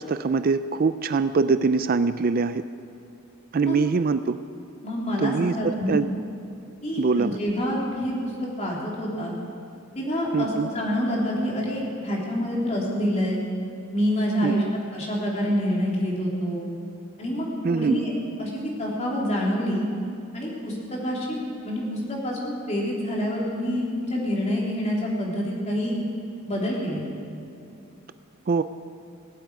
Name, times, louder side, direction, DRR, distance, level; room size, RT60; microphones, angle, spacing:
voice 1, 0.0-2.6 3.5-4.4 5.2-6.1 7.0-7.4 10.3-10.7 14.4-14.5 17.6-18.0 28.5-28.6, right 4 dB, 45° right, 12 dB, 0.4 m, -23 dB
voice 2, 4.8-6.0 6.8-8.3 8.6-9.3 10.0-13.4 13.9-14.6 14.9-16.7 17.2-18.1 18.4-18.5 18.8-19.8 20.3-21.4 21.6-26.0 26.5-27.0, equal, 30° left, -4 dB, 3.5 m, -27 dB
18.0 x 8.3 x 9.4 m, 2.8 s
head